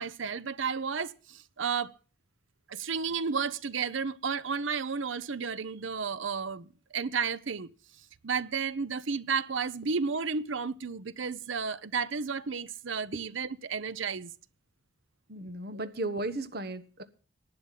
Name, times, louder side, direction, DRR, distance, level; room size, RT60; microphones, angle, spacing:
voice 1, 0.0-1.9 2.7-7.7 8.2-14.3 15.7-15.9, right 5 dB, 75° right, 0.7 m, -32 dB
voice 2, 15.3-17.0, right 2 dB, 50° right, 1.1 m, -35 dB
11.5 x 8.8 x 7.3 m
head